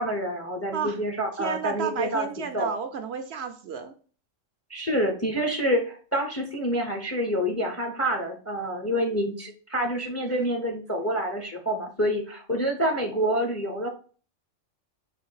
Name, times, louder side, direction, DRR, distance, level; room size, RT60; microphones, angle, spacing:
voice 1, 0.0-2.3 2.5-2.7 4.7-13.9, equal, 15° left, 2 dB, 0.5 m, -27 dB
voice 2, 1.3-3.9 8.7-8.8, right 7 dB, 65° right, 7 dB, 0.7 m, -32 dB
4.0 x 2.6 x 4.6 m, 0.40 s
omnidirectional pair, 1.3 m